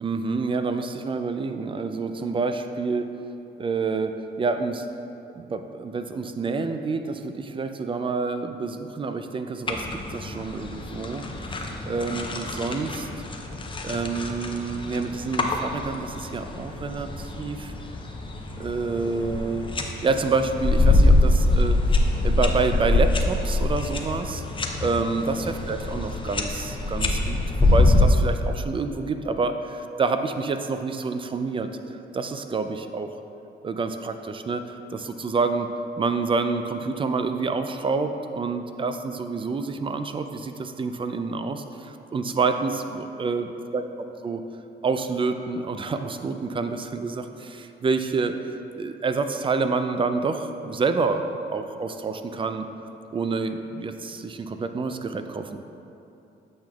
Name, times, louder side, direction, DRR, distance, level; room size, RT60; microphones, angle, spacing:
voice 1, 0.0-3.1 3.6-4.9 5.4-11.3 11.9-13.1 13.8-17.7 18.6-19.7 20.0-21.8 22.2-24.4 24.8-31.7 32.1-33.1 33.6-35.7 36.0-43.8 44.2-44.4 44.8-48.3 48.8-52.7 53.1-55.6, right 4 dB, 25° right, 8 dB, 0.4 m, -28 dB
sound 1, 9.7-28.1, left 2 dB, 25° left, 0.6 m, -24 dB
8.5 x 5.9 x 2.4 m, 2.8 s
cardioid pair, 90°, 20 cm